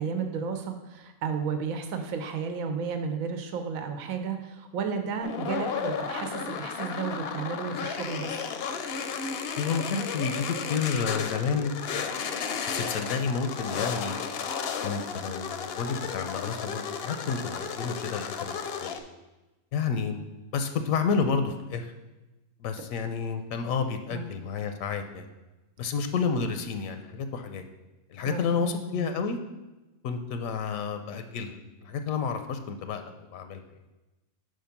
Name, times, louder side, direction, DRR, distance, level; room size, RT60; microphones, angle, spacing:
voice 1, 0.0-8.3 24.1-24.2 28.2-29.1, right 5 dB, 85° right, 7 dB, 1.1 m, -33 dB
sound 1, 5.2-19.0, left 6 dB, 60° left, 0.7 m, -33 dB
voice 2, 9.6-11.7 12.7-14.2 14.8-19.0 19.7-20.2 20.5-21.9 22.6-25.3 25.8-27.6 28.1-29.4 30.0-33.6, left 5 dB, 80° left, 7 dB, 1.0 m, -30 dB
5.1 x 4.7 x 5.8 m, 1.1 s
omnidirectional pair, 1.4 m